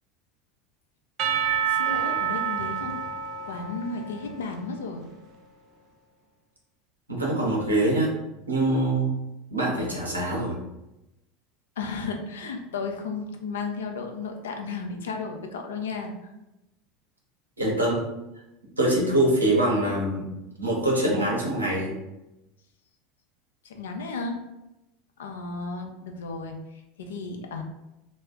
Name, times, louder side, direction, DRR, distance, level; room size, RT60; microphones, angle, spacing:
Percussion / Church bell, 1.2-5.1, right 8 dB, 45° right, 0.3 m, -29 dB
voice 1, 1.7-3.0 3.5-5.0 11.8-16.3 23.6-24.4 25.2-27.6, left 4 dB, 70° left, 3 dB, 0.4 m, -34 dB
voice 2, 7.1-8.1 8.5-9.1 9.5-10.6 17.6-18.0 18.8-20.3 20.6-22.0, right 1 dB, 85° right, -3 dB, 0.7 m, -24 dB
2.4 x 2.0 x 3.4 m, 0.94 s
figure-of-eight pair, 80°, 0 cm